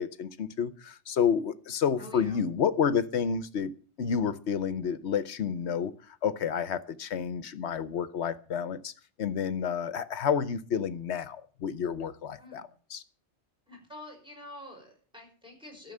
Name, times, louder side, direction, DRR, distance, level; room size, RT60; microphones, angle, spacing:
voice 1, 0.0-3.7 4.0-8.9 9.2-13.0, left 7 dB, 70° left, 15 dB, 1.1 m, -30 dB
voice 2, 2.0-2.4 12.4-12.6 13.7-15.9, left 1 dB, 5° right, 1 dB, 5.2 m, -47 dB
13.0 x 6.6 x 8.6 m, 0.41 s
omnidirectional pair, 1.2 m